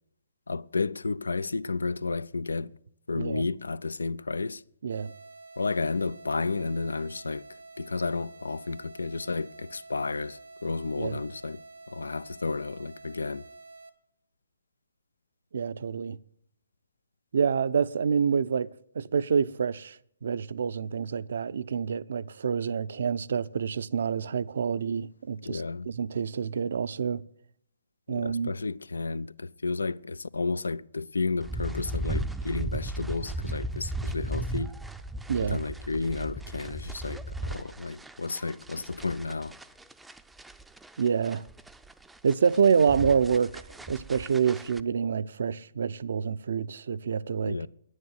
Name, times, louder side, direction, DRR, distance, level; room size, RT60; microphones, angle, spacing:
voice 1, 0.5-2.8 3.1-4.6 5.6-13.4 25.4-25.9 28.1-34.7 35.4-39.5 47.4-47.7, left 3 dB, 85° left, 0.5 m, -32 dB
sound 1, 4.9-13.9, right 3 dB, 80° right, 1.6 m, -49 dB
voice 2, 15.5-16.2 17.3-18.7 18.9-20.0 20.2-27.2 28.1-28.5 35.3-35.6 41.0-41.4 42.2-43.5 43.9-47.5, right 6 dB, 65° right, 0.6 m, -27 dB
sound 2, 31.4-44.8, right 1 dB, 5° right, 0.5 m, -36 dB
10.5 x 9.6 x 9.7 m
hypercardioid pair, 135°, 0 cm